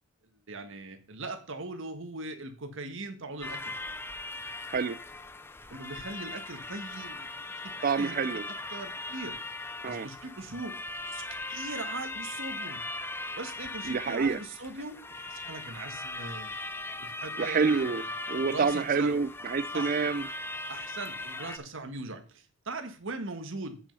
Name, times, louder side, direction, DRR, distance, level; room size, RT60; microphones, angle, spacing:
voice 1, 0.5-3.8 5.7-8.2 8.5-9.4 9.9-10.8 11.1-11.2 11.5-12.8 13.4-16.5 17.0-17.9 18.5-19.2 19.7-19.9 20.7-23.8, right 2 dB, 65° right, 7 dB, 1.6 m, -40 dB
sound 1, 3.4-21.6, left 2 dB, 10° left, 0.5 m, -39 dB
voice 2, 7.8-8.4 9.8-10.1 13.8-14.4 17.4-20.3, right 5 dB, 40° right, 15 dB, 0.5 m, -28 dB
8.2 x 6.3 x 5.4 m, 0.38 s
head